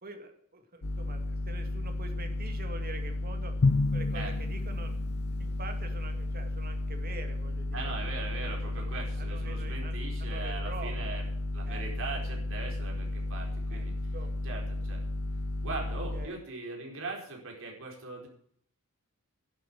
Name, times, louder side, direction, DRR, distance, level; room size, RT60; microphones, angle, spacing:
voice 1, 0.0-3.5 3.9-5.0 5.4-7.9 8.4-11.2 11.6-11.9 13.7-13.9 14.1-14.4 16.1-16.4, right 3 dB, 45° right, 6 dB, 2.1 m, -45 dB
sound 1, 0.8-16.3, left 2 dB, 70° left, 1.0 m, -34 dB
Drum, 3.6-5.4, left 3 dB, 50° left, 0.5 m, -28 dB
voice 2, 7.7-11.2 11.5-13.9 14.4-15.0 15.6-18.3, right 3 dB, 65° right, 0 dB, 4.3 m, -40 dB
11.0 x 7.9 x 8.7 m, 0.64 s
head